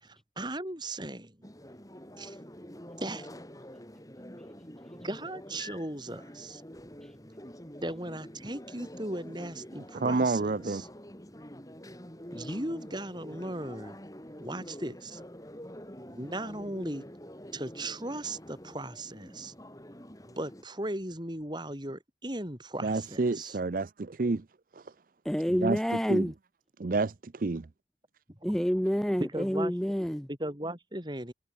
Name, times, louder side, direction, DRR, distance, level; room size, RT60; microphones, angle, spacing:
voice 1, 0.0-1.4 2.2-2.4 3.0-3.3 4.9-6.6 7.8-10.9 12.3-13.9 14.4-15.2 16.1-17.0 17.5-19.5 20.3-23.6 29.2-29.7 30.3-31.3, right 1 dB, 25° right, 4.6 m, -37 dB
sound 1, 1.4-20.6, equal, 20° left, 4.5 m, -47 dB
voice 2, 9.9-10.8 22.8-24.4 25.6-25.8 26.1-26.3 26.8-27.7, right 3 dB, 50° right, 0.5 m, -29 dB
voice 3, 25.2-26.3 28.4-30.3, equal, 5° left, 0.7 m, -28 dB
head